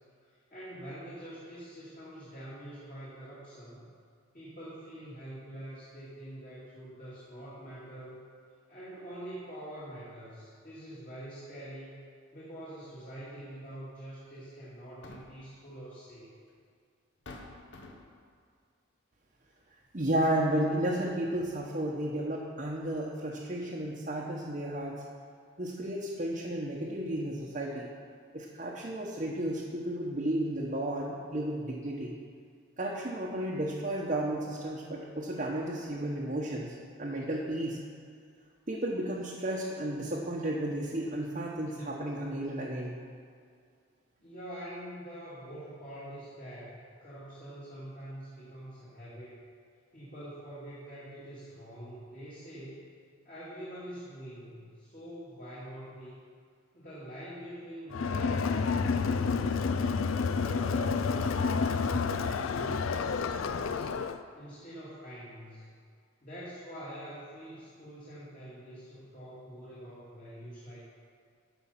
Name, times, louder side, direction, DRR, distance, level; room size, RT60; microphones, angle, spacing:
voice 1, 0.2-3.9 4.3-8.2 8.7-12.0 12.3-16.3 44.2-49.4 49.9-52.8 53.2-56.2 56.7-59.8 60.3-64.0 64.3-65.7 66.2-70.8, right 1 dB, 40° left, -9 dB, 2.4 m, -45 dB
sound 1, 13.6-13.8 14.8-15.5 16.6-16.7 17.3-18.3, left 2 dB, 55° left, 0.9 m, -48 dB
voice 2, 19.9-25.0 25.6-27.9 28.3-32.1 32.8-37.8 38.7-43.0, right 1 dB, 40° right, -4 dB, 0.9 m, -33 dB
Crowd, 57.9-64.2, left 5 dB, 80° left, 0.4 m, -29 dB
14.0 x 5.5 x 5.7 m, 2.2 s
head